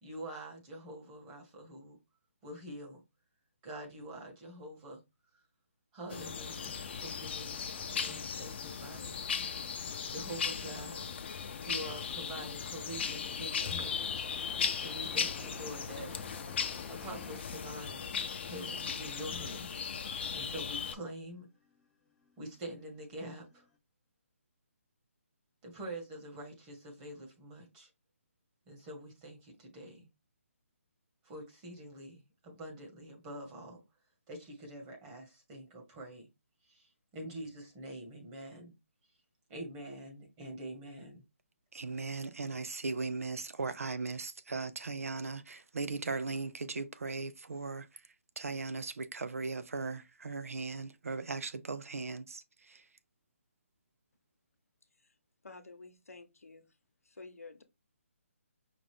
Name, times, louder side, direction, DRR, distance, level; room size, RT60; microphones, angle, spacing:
voice 1, 0.0-2.0 2.4-3.0 3.6-5.0 5.9-9.2 10.1-11.1 11.6-14.3 14.8-16.1 16.9-18.1 18.5-19.8 20.3-21.5 22.4-23.6 25.6-27.9 28.7-30.1 31.2-33.8 34.3-36.3 36.7-38.7 39.5-41.2, right 1 dB, 25° right, 1.6 m, -45 dB
sound 1, 6.1-20.9, left 6 dB, 50° left, 0.6 m, -37 dB
sound 2, 13.8-17.4 18.5-18.6 19.4-20.1 20.9-23.8, left 3 dB, 5° left, 0.5 m, -53 dB
voice 2, 41.7-47.9 48.4-52.4 52.7-52.8, right 3 dB, 80° right, 0.6 m, -38 dB
voice 3, 55.4-56.6 57.1-57.6, left 3 dB, 90° left, 0.9 m, -50 dB
5.2 x 2.5 x 3.5 m
figure-of-eight pair, 150°, 8 cm